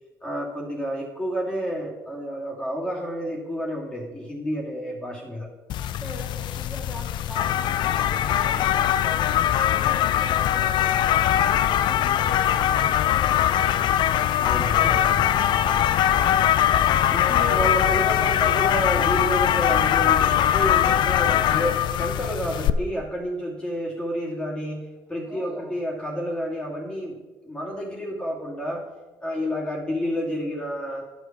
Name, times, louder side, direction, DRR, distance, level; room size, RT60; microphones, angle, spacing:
voice 1, 0.2-5.5 9.7-9.8 14.4-15.4 17.1-28.9 29.2-31.0, equal, 10° left, -4 dB, 2.4 m, -30 dB
sound 1, 5.7-22.7, left 11 dB, 65° left, 0.4 m, -21 dB
voice 2, 5.7-10.9 11.3-14.7 15.3-16.5 25.2-25.8, equal, 10° right, -2 dB, 2.5 m, -41 dB
10.5 x 5.0 x 6.0 m, 1.2 s
supercardioid pair, 80°, 8 cm